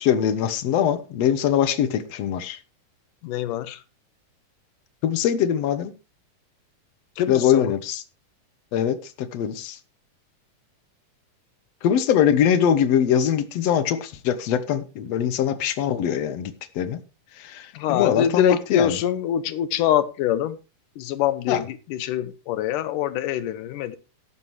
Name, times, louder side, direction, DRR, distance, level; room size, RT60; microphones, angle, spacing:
voice 1, 0.0-2.6 5.0-5.9 7.3-8.0 8.7-9.8 11.8-17.0 17.4-19.0 21.5-21.6, left 9 dB, 65° left, 1.9 m, -22 dB
voice 2, 3.2-3.8 7.2-7.7 17.7-20.6 21.0-24.0, left 10 dB, 85° left, 2.4 m, -24 dB
14.0 x 11.5 x 3.2 m
omnidirectional pair, 3.7 m